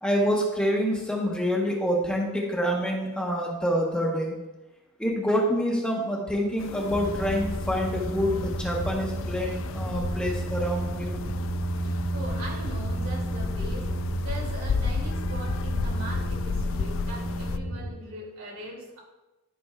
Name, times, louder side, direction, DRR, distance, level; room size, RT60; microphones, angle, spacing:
voice 1, 0.0-4.3 5.0-11.2, equal, 5° left, -3 dB, 1.1 m, -27 dB
sound 1, 6.6-17.6, left 5 dB, 65° left, 0.3 m, -34 dB
sound 2, 6.9-17.9, right 1 dB, 65° right, 1.7 m, -32 dB
voice 2, 11.7-13.8 14.2-19.0, right 1 dB, 80° right, -3 dB, 2.8 m, -40 dB
13.0 x 6.0 x 2.4 m, 1.0 s
head